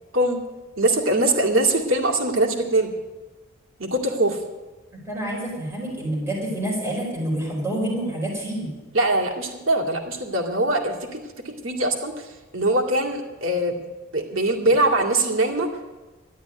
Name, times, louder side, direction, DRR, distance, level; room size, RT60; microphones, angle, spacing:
voice 1, 0.8-2.9 3.8-4.4 8.9-13.8 14.1-15.7, right 1 dB, 80° right, 1 dB, 2.3 m, -22 dB
voice 2, 4.9-8.7, right 1 dB, 10° right, -4 dB, 4.9 m, -28 dB
12.5 x 11.0 x 9.5 m, 1.2 s
head